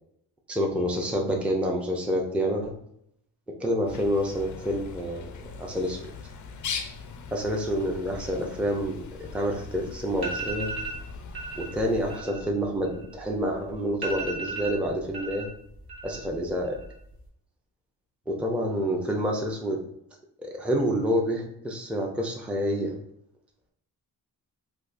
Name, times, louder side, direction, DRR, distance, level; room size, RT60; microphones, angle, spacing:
voice 1, 0.5-2.7 3.6-5.2 5.6-6.0 7.3-9.1 9.3-10.7 11.6-15.5 16.0-16.7 18.3-19.8 20.4-23.0, equal, 5° right, 0 dB, 0.5 m, -28 dB
Bird, 3.9-12.2, left 5 dB, 50° left, 0.4 m, -40 dB
sound 1, 9.7-9.8 10.1-11.0 11.3-11.7 12.0-13.4 13.7-13.8 14.0-15.5 15.8-16.4 16.6-17.2, right 3 dB, 75° right, 1.1 m, -35 dB
3.4 x 2.4 x 2.5 m, 0.73 s
cardioid pair, 75°, 39 cm